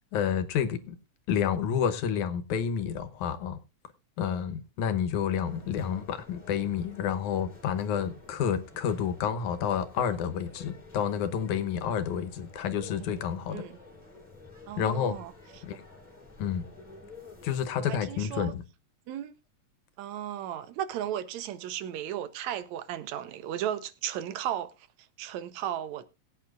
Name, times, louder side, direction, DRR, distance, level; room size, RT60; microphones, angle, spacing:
voice 1, 0.1-1.0 1.3-3.6 4.2-13.6 14.8-15.2 15.6-15.8 16.4-16.7 17.4-18.6, left 8 dB, 85° left, 2.5 m, -29 dB
sound 1, 5.3-17.7, left 2 dB, 15° left, 3.5 m, -51 dB
voice 2, 14.7-15.3 15.6-15.7 17.8-18.5 19.1-19.3 20.0-24.9 25.2-26.0, right 11 dB, 80° right, 2.1 m, -35 dB
22.0 x 8.7 x 2.4 m
omnidirectional pair, 3.3 m